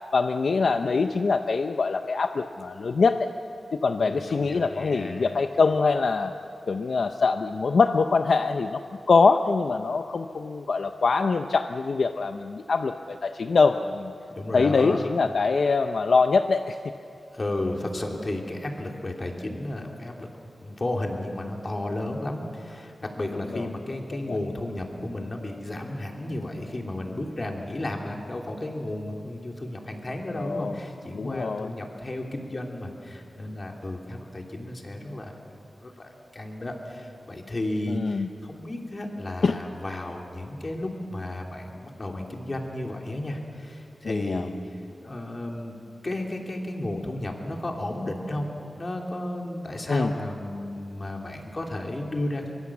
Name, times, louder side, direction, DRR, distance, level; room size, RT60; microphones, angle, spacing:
voice 1, 0.1-3.3 3.8-6.3 6.7-8.8 9.1-14.1 14.5-16.8 23.5-23.7 24.3-24.4 30.3-30.8 31.1-31.7 37.9-38.3 39.4-39.6 44.0-44.5 49.9-50.1, left 4 dB, 65° left, 7 dB, 0.6 m, -23 dB
voice 2, 4.0-5.3 14.3-15.1 17.3-20.3 20.6-44.7 45.0-45.8 46.0-48.5 48.8-52.5, left 1 dB, 30° left, 1 dB, 2.9 m, -33 dB
24.0 x 23.0 x 7.3 m, 2.6 s
wide cardioid pair, 140°, 0 cm